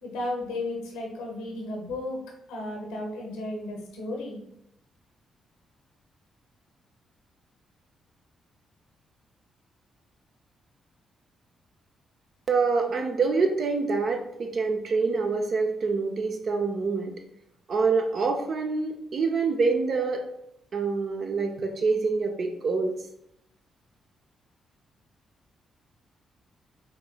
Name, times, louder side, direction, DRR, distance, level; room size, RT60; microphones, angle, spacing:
voice 1, 0.0-2.2 2.5-4.4, left 2 dB, 80° left, 0 dB, 0.9 m, -34 dB
voice 2, 12.5-17.2 17.7-20.3 20.7-23.0, right 4 dB, 60° right, 4 dB, 0.5 m, -26 dB
5.1 x 2.9 x 2.3 m, 0.78 s
hypercardioid pair, 45°, 0 cm